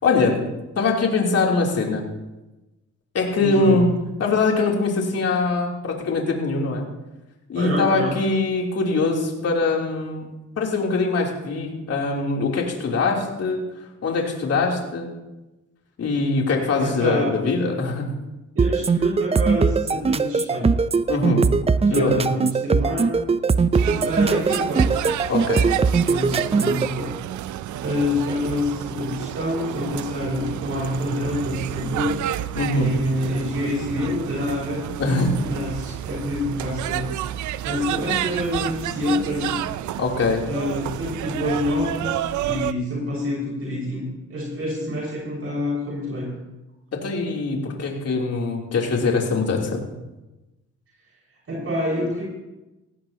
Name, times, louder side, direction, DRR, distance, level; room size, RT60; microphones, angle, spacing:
voice 1, 0.0-0.4 0.7-2.0 3.1-3.9 4.2-6.9 7.5-10.3 10.6-13.6 14.0-15.1 16.0-18.1 21.1-21.5 21.9-22.2 25.3-25.7 32.5-32.9 35.0-35.3 40.0-40.4 46.9-49.9, left 3 dB, 55° left, -1 dB, 3.3 m, -22 dB
voice 2, 3.4-3.8 7.5-8.1 16.8-17.3 18.5-20.7 21.9-23.2 23.8-24.9 26.1-27.1 27.8-32.2 32.7-34.8 35.4-37.1 37.6-39.6 40.5-46.3 51.5-52.2, left 1 dB, 50° right, -4 dB, 5.4 m, -27 dB
sound 1, 18.6-26.9, right 4 dB, 20° right, 0.5 m, -20 dB
sound 2, 23.7-42.7, right 13 dB, 75° right, 0.6 m, -30 dB
18.0 x 16.5 x 2.9 m, 1.0 s
cardioid pair, 90°, 30 cm